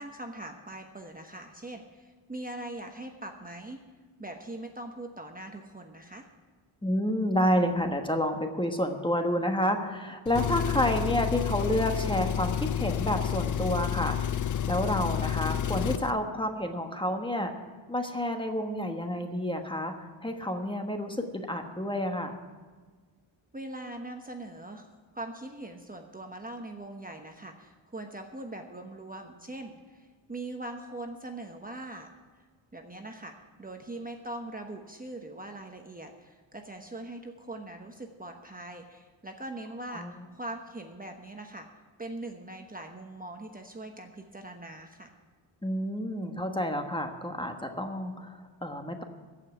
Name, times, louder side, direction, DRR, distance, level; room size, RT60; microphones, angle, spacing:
voice 1, 0.0-3.8 4.2-6.3 23.5-24.9 25.1-32.1 32.7-41.7 42.0-45.1, right 2 dB, 20° right, 3 dB, 1.1 m, -41 dB
voice 2, 6.8-17.5 17.9-19.9 20.2-22.4 39.9-40.1 45.6-49.0, equal, 10° left, 4 dB, 1.3 m, -29 dB
Engine, 10.3-16.1, left 9 dB, 45° left, 0.5 m, -30 dB
15.0 x 5.7 x 9.5 m, 1.4 s
cardioid pair, 90°, 46 cm